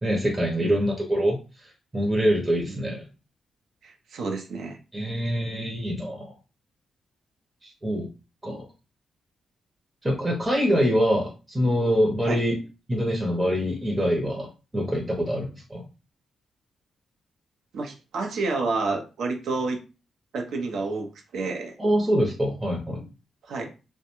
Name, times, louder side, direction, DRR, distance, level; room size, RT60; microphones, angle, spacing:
voice 1, 0.0-3.1 4.9-6.3 7.6-8.1 8.4-8.7 10.0-12.5 12.9-14.5 14.7-15.8 21.8-23.1, equal, 20° right, -2 dB, 0.6 m, -25 dB
voice 2, 2.7-3.0 3.8-4.8 12.3-12.4 17.7-19.8 20.3-21.7 23.5-23.7, right 3 dB, 80° right, 3 dB, 0.5 m, -30 dB
2.4 x 2.1 x 2.9 m, 0.32 s
cardioid pair, 80°, 0 cm